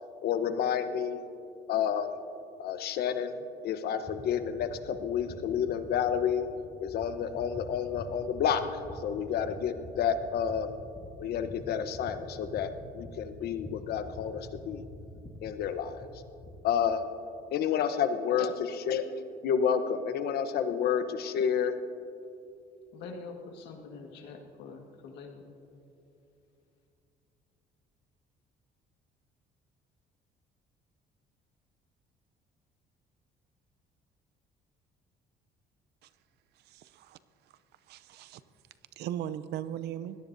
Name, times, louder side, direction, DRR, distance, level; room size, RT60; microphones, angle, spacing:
voice 1, 0.2-1.2 1.7-2.1 2.6-3.4 3.6-6.5 6.8-10.8 11.2-14.8 15.4-16.1 16.6-17.1 17.5-18.5 18.9-19.1 19.4-21.7, left 8 dB, 70° left, 9 dB, 1.0 m, -30 dB
sound 1, 4.0-16.7, left 1 dB, 35° left, 2.4 m, -47 dB
voice 2, 22.9-25.5, left 4 dB, 85° left, 2 dB, 1.7 m, -45 dB
voice 3, 36.7-37.2 37.9-38.4 39.0-40.2, right 10 dB, 75° right, 14 dB, 0.6 m, -38 dB
22.5 x 17.5 x 2.7 m, 2.7 s
cardioid pair, 110°, 17 cm